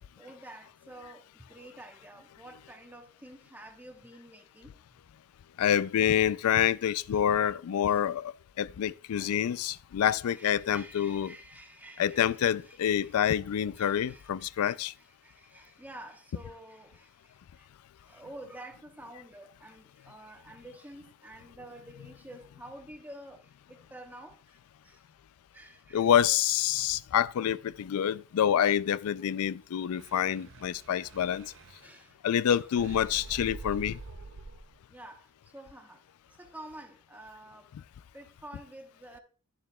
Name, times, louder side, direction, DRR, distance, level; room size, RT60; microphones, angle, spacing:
voice 1, 0.0-4.8 7.9-8.0 9.2-9.4 10.0-13.2 13.7-17.7 18.0-25.0 25.5-26.1 31.8-32.2 32.5-32.6 34.9-37.7 38.1-39.2, right 1 dB, 10° right, 0.9 m, -50 dB
voice 2, 5.6-11.3 12.0-14.9 22.0-22.1 25.9-31.5 32.2-34.0, left 9 dB, 70° left, 0.3 m, -27 dB
sound 1, 30.0-32.2 32.7-34.8, right 3 dB, 55° right, 0.6 m, -45 dB
10.5 x 7.0 x 2.3 m
head